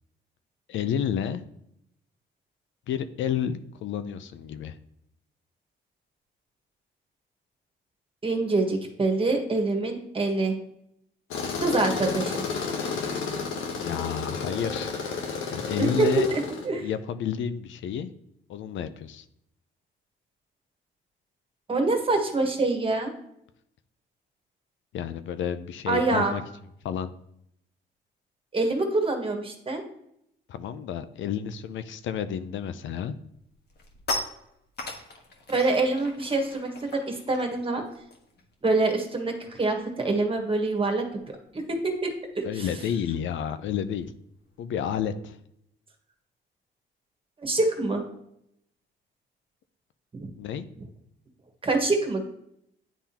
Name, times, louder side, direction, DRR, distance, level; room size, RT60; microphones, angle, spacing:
voice 1, 0.7-1.5 2.9-4.8 13.8-14.9 15.5-16.3 16.7-18.1 18.5-19.3 24.9-26.4 26.8-27.1 30.5-33.1 42.4-44.1 44.6-45.4 50.4-50.7, left 8 dB, 75° left, 11 dB, 0.5 m, -30 dB
voice 2, 8.2-10.5 11.6-12.4 15.8-16.9 21.7-23.1 25.9-26.4 28.5-29.8 35.5-37.8 38.6-41.0 41.5-42.7 47.4-48.0 50.1-50.3 51.6-52.2, right 2 dB, 25° right, 3 dB, 1.5 m, -25 dB
Tools, 11.3-16.7, left 5 dB, 90° left, 1.1 m, -32 dB
sound 1, 32.7-32.9 33.3-39.3 39.5-39.8 40.0-45.1, left 2 dB, 55° left, 1.4 m, -40 dB
10.0 x 3.6 x 2.9 m, 0.75 s
cardioid pair, 90°, 20 cm